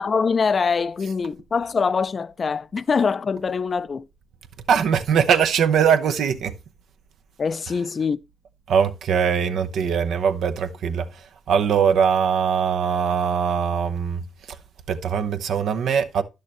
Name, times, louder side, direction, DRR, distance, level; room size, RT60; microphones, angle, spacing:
voice 1, 0.0-4.1 7.4-8.2, left 5 dB, 50° left, 0.4 m, -23 dB
voice 2, 4.7-6.5 7.7-7.8 8.7-11.2 11.5-14.2 14.9-16.2, right 7 dB, 80° right, 0.8 m, -21 dB
11.0 x 6.5 x 3.0 m
cardioid pair, 60°, 0 cm